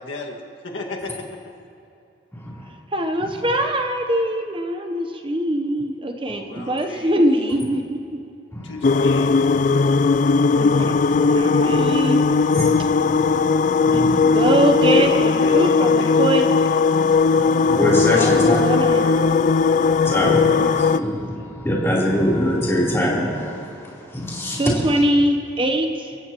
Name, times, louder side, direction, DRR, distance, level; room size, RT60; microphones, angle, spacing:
voice 1, 0.0-1.4 6.2-7.2 8.6-9.3 14.8-16.2 18.1-19.2, left 2 dB, 90° left, -1 dB, 1.9 m, -32 dB
voice 2, 2.9-8.0 10.5-11.0 11.3-12.3 13.9-16.5 18.4-19.1 20.6-20.7 24.5-26.2, right 1 dB, 25° right, 5 dB, 0.8 m, -22 dB
sound 1, 8.8-21.0, left 4 dB, 40° left, 0.3 m, -18 dB
voice 3, 13.0-13.3 13.9-14.4 17.3-18.6 20.0-23.5 24.1-24.7, left 1 dB, 15° left, -6 dB, 3.5 m, -23 dB
30.0 x 15.5 x 3.0 m, 2.7 s
head